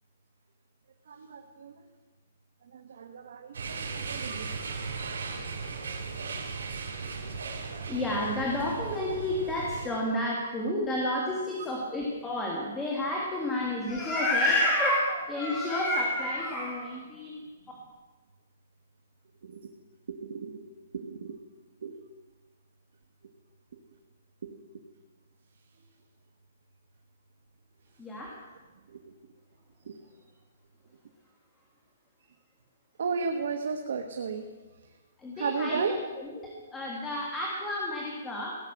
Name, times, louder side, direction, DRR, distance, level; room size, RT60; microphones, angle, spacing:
voice 1, 1.1-1.7 2.7-4.7 19.4-19.6 20.1-20.6 20.9-21.4 21.8-22.0 24.4-24.6 29.9-30.0 33.0-34.4 35.4-36.0, right 5 dB, 65° right, 4 dB, 1.2 m, -34 dB
sound 1, 3.5-9.9, right 4 dB, 90° right, 2.8 m, -37 dB
voice 2, 7.9-17.4 28.0-28.3 35.2-38.6, left 1 dB, 10° left, -3 dB, 1.6 m, -30 dB
16.5 x 6.6 x 7.7 m, 1.3 s
hypercardioid pair, 165°, 0 cm